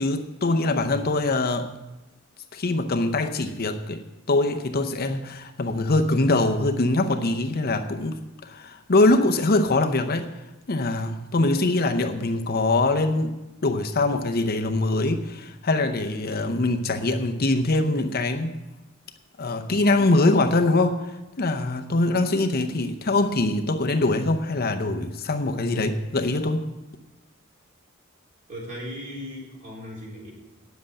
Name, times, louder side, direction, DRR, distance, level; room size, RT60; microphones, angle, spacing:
voice 1, 0.0-1.7 2.5-4.0 4.3-10.3 10.7-13.3 13.6-18.6 19.4-26.7, left 2 dB, 45° left, 0.7 m, -23 dB
voice 2, 28.5-30.3, equal, 40° right, 4.0 m, -37 dB
9.2 x 7.7 x 8.4 m
head